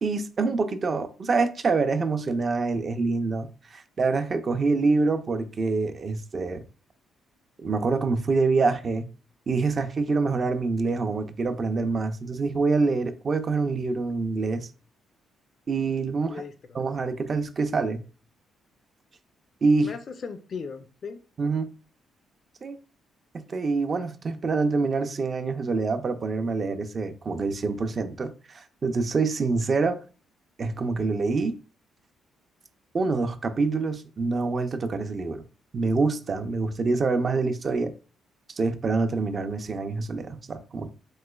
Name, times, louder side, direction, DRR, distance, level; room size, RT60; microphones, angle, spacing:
voice 1, 0.0-6.6 7.6-9.0 9.5-14.7 15.7-16.4 16.7-18.0 19.6-19.9 21.4-21.7 22.6-22.8 23.3-30.0 30.6-31.6 32.9-35.4 35.7-37.9 38.6-40.9, right 4 dB, 40° right, 0.4 m, -26 dB
voice 2, 16.2-16.8 19.8-21.2, left 5 dB, 50° left, 0.3 m, -38 dB
3.0 x 3.0 x 2.2 m
cardioid pair, 90°, 0 cm